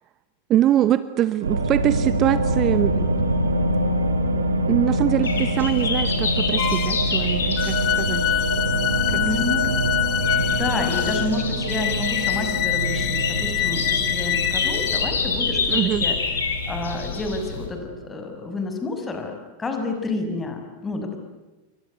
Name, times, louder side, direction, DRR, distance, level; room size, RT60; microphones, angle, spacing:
voice 1, 0.5-3.1 4.7-8.2 15.7-16.1, right 12 dB, 30° right, 15 dB, 1.0 m, -23 dB
sound 1, 1.4-18.3, right 1 dB, 75° right, 2.9 m, -25 dB
sound 2, 5.2-17.7, left 5 dB, 65° left, 5.7 m, -28 dB
sound 3, 6.6-7.1 7.6-15.1, left 14 dB, 35° left, 1.4 m, -26 dB
voice 2, 9.0-9.7 10.3-16.2 16.6-21.2, left 2 dB, 15° left, 5 dB, 6.3 m, -30 dB
29.0 x 24.0 x 8.2 m, 1.2 s
figure-of-eight pair, 90°, 0 cm